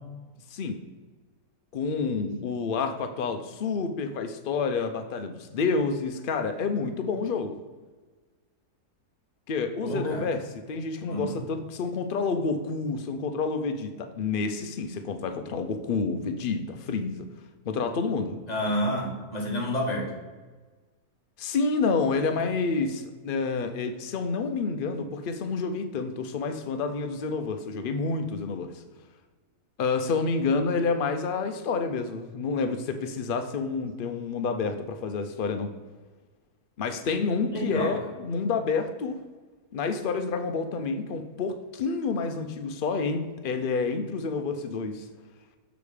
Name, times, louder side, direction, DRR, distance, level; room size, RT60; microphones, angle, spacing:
voice 1, 1.7-7.6 9.5-10.4 10.7-17.3 17.7-18.4 21.4-28.8 29.8-35.7 36.8-39.2 39.7-45.1, left 4 dB, 85° left, 7 dB, 0.4 m, -29 dB
voice 2, 9.8-10.3 11.1-11.4 18.5-20.1 37.5-38.0, equal, 25° left, -1 dB, 1.5 m, -29 dB
7.0 x 5.1 x 4.8 m, 1.3 s
omnidirectional pair, 1.7 m